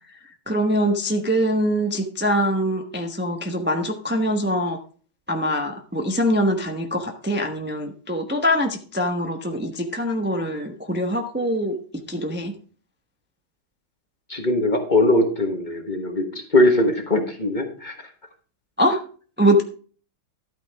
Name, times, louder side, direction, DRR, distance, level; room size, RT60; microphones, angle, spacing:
voice 1, 0.5-4.8 5.3-11.8 12.1-12.5 18.8-19.0 19.4-19.6, equal, 15° right, 3 dB, 0.4 m, -23 dB
voice 2, 14.3-17.9, left 1 dB, 30° left, 5 dB, 1.1 m, -21 dB
12.5 x 8.9 x 3.5 m, 0.41 s
omnidirectional pair, 2.3 m